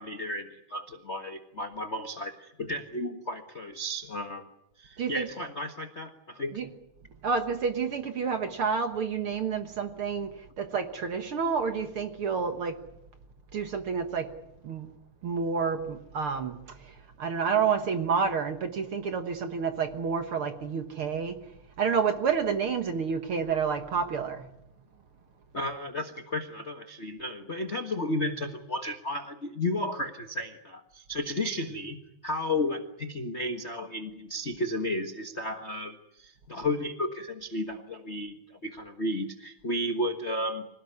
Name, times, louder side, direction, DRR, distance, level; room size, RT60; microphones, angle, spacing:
voice 1, 0.0-4.5 4.8-6.6 25.5-40.7, left 1 dB, 70° left, 6 dB, 0.6 m, -33 dB
voice 2, 7.2-12.8 13.5-14.3 14.6-14.9 15.2-21.4 21.8-24.5, right 6 dB, 55° right, 7 dB, 1.7 m, -29 dB
26.0 x 17.5 x 9.7 m, 0.84 s
omnidirectional pair, 3.9 m